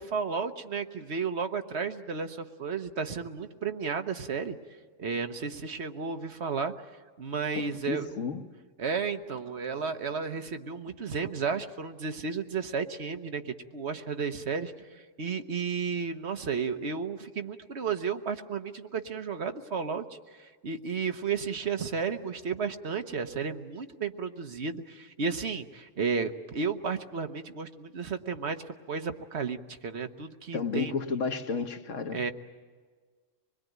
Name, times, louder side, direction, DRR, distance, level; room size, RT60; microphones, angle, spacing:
voice 1, 0.0-4.6 5.0-6.7 7.2-8.1 8.8-14.7 15.2-20.0 20.4-28.6 28.9-30.9 32.1-32.3, right 5 dB, 65° right, 7 dB, 1.4 m, -33 dB
voice 2, 7.6-8.4 30.5-32.2, left 5 dB, 90° left, 7 dB, 1.6 m, -32 dB
25.0 x 21.0 x 9.3 m, 1.5 s
omnidirectional pair, 1.2 m